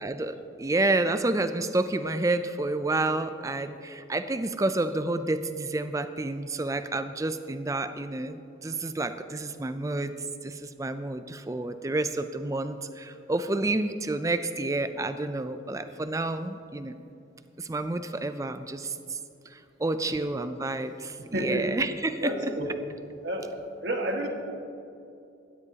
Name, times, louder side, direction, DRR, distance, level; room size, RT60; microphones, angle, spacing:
voice 1, 0.0-10.1 10.4-17.0 17.6-19.2 19.5-22.5, right 2 dB, 15° right, 10 dB, 0.4 m, -29 dB
voice 2, 21.3-21.7 22.2-22.7 23.2-24.3, right 1 dB, 55° right, 1 dB, 1.7 m, -30 dB
16.5 x 13.0 x 2.9 m, 2.7 s
head